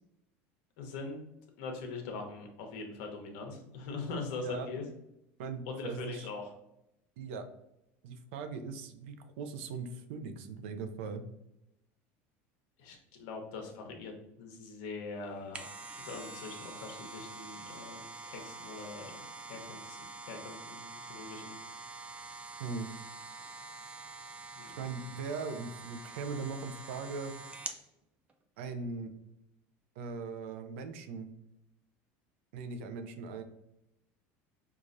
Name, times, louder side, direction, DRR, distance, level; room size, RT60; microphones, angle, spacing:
voice 1, 0.8-1.2 1.6-4.8 5.7-6.5 12.8-15.7 16.0-19.1 19.5-20.0 20.2-21.5 24.5-24.8, left 4 dB, 70° left, 3 dB, 0.9 m, -42 dB
voice 2, 4.3-4.7 5.4-6.3 7.2-7.4 8.0-11.2 22.6-22.9 24.8-27.3 28.6-29.1 30.0-31.3 32.5-33.4, right 4 dB, 85° right, 8 dB, 0.5 m, -39 dB
sound 1, 15.3-27.8 28.3-28.4, right 3 dB, 20° right, 0.4 m, -46 dB
4.7 x 2.4 x 2.6 m, 0.84 s
supercardioid pair, 140°, 6 cm